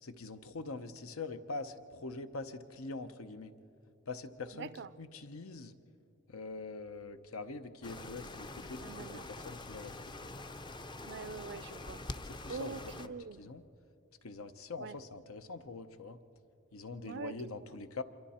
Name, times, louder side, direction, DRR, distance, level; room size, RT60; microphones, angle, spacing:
voice 1, 0.0-3.5 4.1-4.7 5.0-5.8 6.3-9.2 9.4-10.0 10.2-10.3 12.2-13.6 14.2-16.2 16.7-18.0, left 3 dB, 85° left, 10 dB, 0.8 m, -44 dB
voice 2, 4.5-4.9 8.8-9.2 11.0-12.0 12.5-13.5 14.8-15.0 17.0-17.4 17.6-17.7, right 5 dB, 55° right, 18 dB, 0.4 m, -44 dB
sound 1, 7.8-13.1, left 2 dB, 20° left, 0.5 m, -45 dB
26.5 x 23.5 x 4.3 m, 2.9 s
head